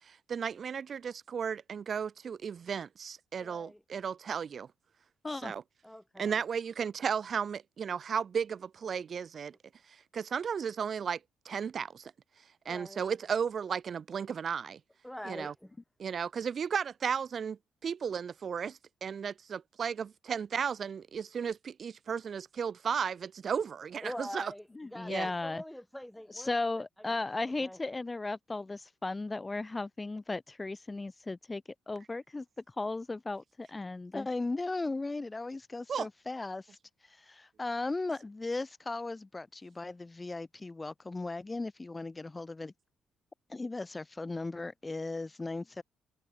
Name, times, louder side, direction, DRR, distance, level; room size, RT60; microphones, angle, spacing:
voice 1, 0.1-4.7 5.4-5.6 6.2-9.5 10.1-11.2 11.4-12.1 12.7-14.8 15.3-15.5 16.0-17.6 17.8-24.5 25.1-25.3 35.9-36.1, right 7 dB, 50° right, 2.5 m, -34 dB
voice 2, 3.4-3.8 5.8-6.4 12.7-13.0 15.0-15.7 24.0-26.5 27.1-27.2 27.6-27.8, left 1 dB, 5° left, 3.4 m, -44 dB
voice 3, 24.7-25.6 26.3-32.4 32.8-36.8 37.1-42.7 43.5-45.8, left 3 dB, 20° left, 6.6 m, -36 dB
cardioid pair, 90°, 0 cm